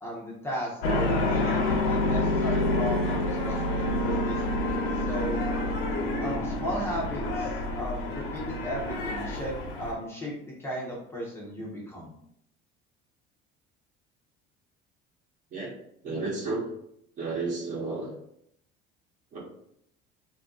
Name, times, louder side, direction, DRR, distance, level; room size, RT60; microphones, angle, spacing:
voice 1, 0.0-5.5 6.2-12.1, equal, 10° left, -6 dB, 0.5 m, -36 dB
sound 1, 0.8-9.9, left 2 dB, 90° left, 0.8 m, -28 dB
voice 2, 16.0-16.7 17.2-18.1 19.3-19.4, right 3 dB, 35° right, -2 dB, 1.0 m, -32 dB
2.7 x 2.5 x 3.6 m, 0.73 s
cardioid pair, 175°, 21 cm